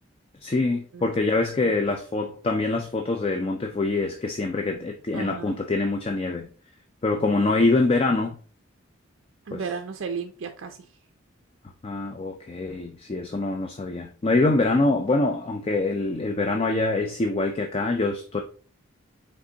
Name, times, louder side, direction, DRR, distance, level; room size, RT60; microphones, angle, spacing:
voice 1, 0.4-6.5 7.0-8.4 9.5-9.7 11.8-18.4, left 2 dB, 30° left, 0.3 m, -24 dB
voice 2, 5.1-5.6 9.5-10.8, right 5 dB, 65° right, 0.4 m, -34 dB
4.9 x 3.6 x 2.7 m
head